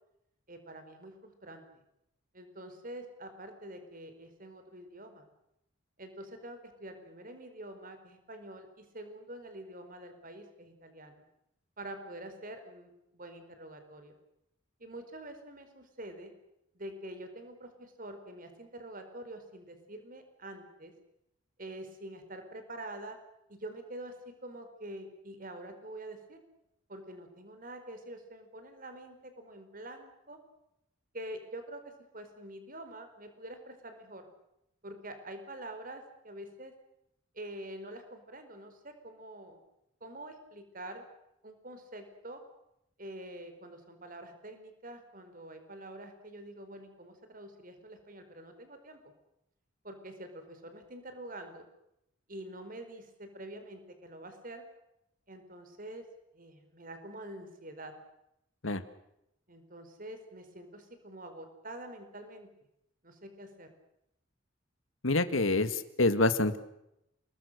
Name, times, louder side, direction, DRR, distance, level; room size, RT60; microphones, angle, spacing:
voice 1, 0.5-1.8 2.3-5.2 6.0-11.1 11.8-14.2 14.8-16.3 16.7-20.9 21.6-23.2 23.5-24.1 24.4-26.4 26.9-30.4 31.1-34.3 34.8-36.7 37.3-39.6 40.0-41.0 41.4-42.4 43.0-49.1 49.8-51.7 52.3-54.6 55.3-56.0 56.3-57.9 59.5-62.5 63.0-63.7, right 1 dB, 45° right, 8 dB, 4.5 m, -46 dB
voice 2, 65.0-66.6, left 2 dB, 90° left, 11 dB, 2.0 m, -26 dB
29.0 x 21.0 x 6.7 m, 0.82 s
head